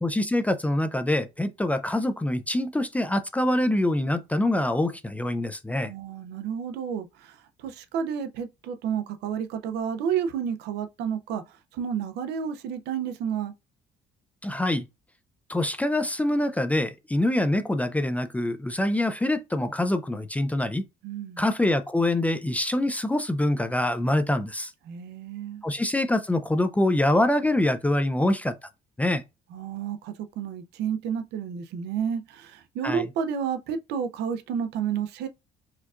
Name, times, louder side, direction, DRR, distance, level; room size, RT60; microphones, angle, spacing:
voice 1, 0.0-5.9 14.4-14.9 15.5-20.8 21.4-24.7 25.6-28.7 29.0-29.2 32.8-33.1, left 1 dB, 10° left, 0.3 m, -25 dB
voice 2, 5.8-13.5 21.0-21.4 24.9-25.6 29.5-35.3, right 7 dB, 80° right, 0.5 m, -31 dB
4.4 x 2.3 x 2.4 m
cardioid pair, 110°, 17 cm